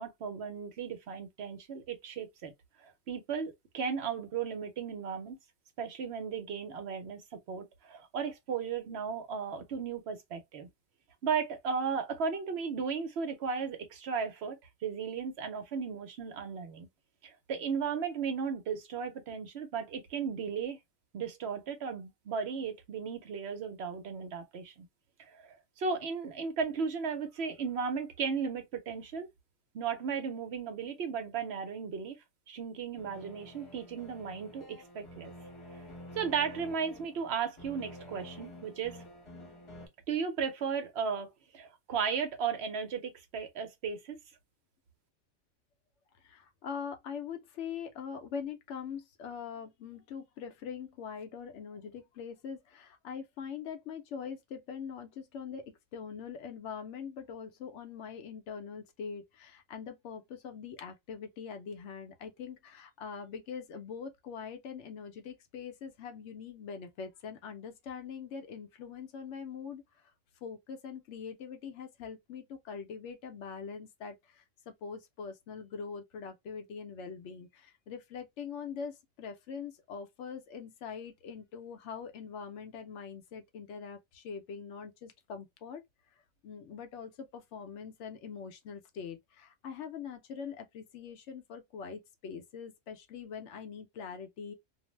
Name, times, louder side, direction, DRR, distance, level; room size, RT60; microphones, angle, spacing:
voice 1, 0.0-2.5 2.8-5.4 5.8-7.2 7.5-10.7 11.2-14.6 14.8-16.9 17.2-20.8 21.1-24.9 25.3-29.3 29.7-32.1 32.5-35.3 36.2-39.0 40.1-44.2, right 6 dB, 60° right, 0.9 m, -35 dB
sound 1, 33.0-39.9, left 1 dB, 30° left, 0.8 m, -49 dB
voice 2, 46.2-69.8 70.4-85.8 86.4-94.5, left 6 dB, 70° left, 0.9 m, -43 dB
2.5 x 2.0 x 3.1 m
omnidirectional pair, 1.3 m